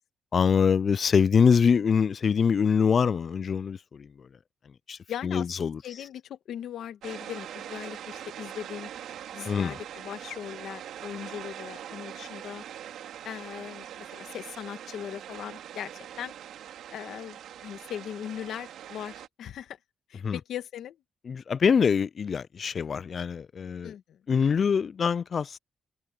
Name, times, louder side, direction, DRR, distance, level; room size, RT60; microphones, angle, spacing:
voice 1, 0.3-4.1 4.9-5.8 9.5-9.8 20.2-20.4 21.3-23.9 24.3-25.6, left 6 dB, 45° left, 0.3 m, -24 dB
voice 2, 5.1-8.9 9.3-12.6 13.2-16.3 16.9-19.8 20.1-21.0 23.8-24.2, left 10 dB, 70° left, 1.4 m, -39 dB
sound 1, 7.0-19.3, right 10 dB, 75° right, 2.3 m, -42 dB
cardioid pair, 90°, 0 cm